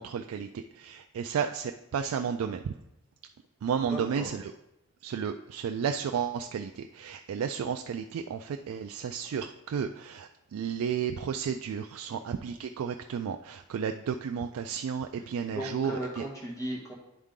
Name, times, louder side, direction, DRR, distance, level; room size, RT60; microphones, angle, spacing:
voice 1, 0.0-2.7 3.6-4.5 5.0-16.2, right 7 dB, 80° right, 5 dB, 0.3 m, -33 dB
voice 2, 3.9-4.3 12.1-12.2 15.5-16.9, right 1 dB, 15° left, -3 dB, 1.5 m, -36 dB
10.0 x 3.6 x 3.7 m, 0.86 s
head